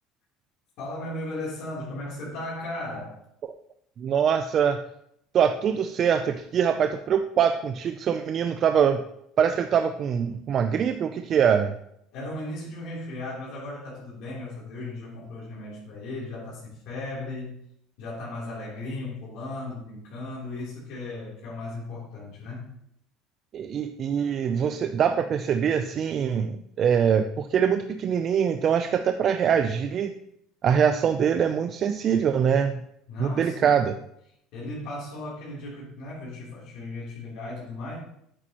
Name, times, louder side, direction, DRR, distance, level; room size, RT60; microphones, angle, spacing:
voice 1, 0.8-3.2 12.1-17.6 18.0-22.7 33.1-33.9 34.5-38.0, left 2 dB, 70° left, -6 dB, 3.4 m, -36 dB
voice 2, 4.0-4.8 5.3-9.0 9.4-11.7 23.5-30.1 30.6-32.8 33.2-33.9, right 7 dB, 45° right, 8 dB, 0.5 m, -23 dB
8.8 x 8.8 x 3.0 m, 0.74 s
supercardioid pair, 110°, 0 cm